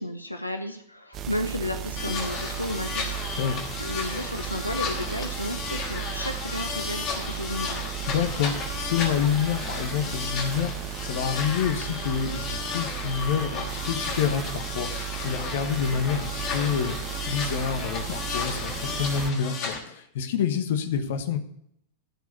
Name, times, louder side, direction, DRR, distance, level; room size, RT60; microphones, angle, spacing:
voice 1, 0.0-3.4 3.8-7.8, left 1 dB, 90° left, 6 dB, 0.7 m, -33 dB
sound 1, 1.1-19.3, right 12 dB, 30° right, 0.9 m, -35 dB
sound 2, 2.0-19.8, left 5 dB, 40° left, 2.6 m, -34 dB
voice 2, 8.1-21.4, left 7 dB, 55° left, 9 dB, 1.1 m, -28 dB
13.0 x 4.8 x 8.3 m, 0.73 s
figure-of-eight pair, 95°, 0 cm